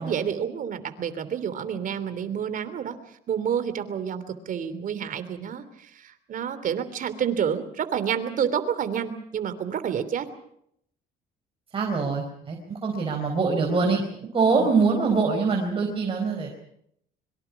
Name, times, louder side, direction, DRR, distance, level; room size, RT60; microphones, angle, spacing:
voice 1, 0.0-2.9 3.3-10.3 14.5-14.7, right 8 dB, 55° right, 11 dB, 3.1 m, -29 dB
voice 2, 11.7-14.0 14.3-16.5, right 4 dB, 30° right, 1 dB, 4.6 m, -24 dB
25.5 x 23.5 x 6.0 m, 0.71 s
cardioid pair, 110°, 17 cm